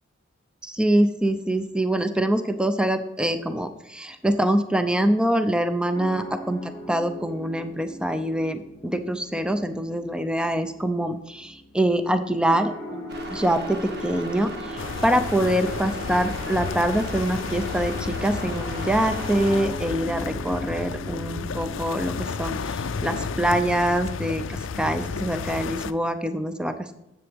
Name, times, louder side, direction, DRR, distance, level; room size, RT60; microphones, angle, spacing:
voice 1, 0.6-26.9, right 1 dB, 5° right, 9 dB, 0.4 m, -25 dB
sound 1, 5.9-22.5, left 1 dB, 15° left, 2.1 m, -41 dB
sound 2, 13.1-19.7, right 1 dB, 50° right, 1.5 m, -37 dB
sound 3, 14.8-25.9, left 5 dB, 65° left, 0.4 m, -32 dB
9.9 x 7.8 x 3.5 m, 0.94 s
head